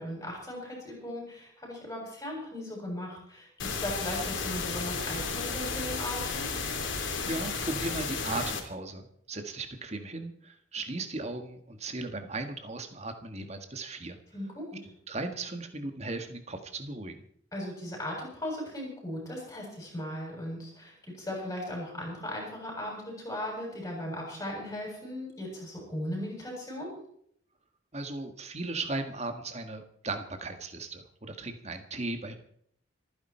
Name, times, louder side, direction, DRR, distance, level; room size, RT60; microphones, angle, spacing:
voice 1, 0.0-6.5 14.3-14.7 17.5-26.9, left 1 dB, 15° left, -1 dB, 7.5 m, -37 dB
sound 1, 3.6-8.6, left 4 dB, 70° left, 2.9 m, -33 dB
voice 2, 7.2-14.2 15.1-17.2 27.9-32.4, right 2 dB, 35° right, 6 dB, 1.7 m, -37 dB
27.0 x 10.0 x 4.5 m, 0.67 s
head